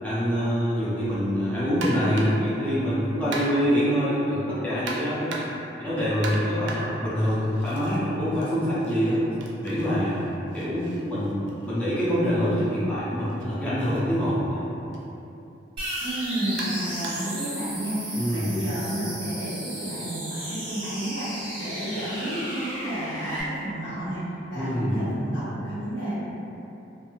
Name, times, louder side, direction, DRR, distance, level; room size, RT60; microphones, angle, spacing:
voice 1, 0.0-5.4 5.8-9.2 9.6-10.2 10.5-14.6 18.1-18.5 24.5-25.0, equal, 10° left, -12 dB, 0.5 m, -25 dB
sound 1, 1.8-2.5 3.3-3.8 4.9-5.7 6.2-8.0 8.3-12.2 13.3-13.4 13.9-14.0 14.9-15.1 16.6-17.4, right 2 dB, 85° right, 0.4 m, -37 dB
sound 2, 15.8-23.4, right 1 dB, 25° right, 0.8 m, -35 dB
voice 2, 16.0-26.2, right 1 dB, 85° left, -13 dB, 1.3 m, -31 dB
2.5 x 2.5 x 2.8 m, 2.9 s
head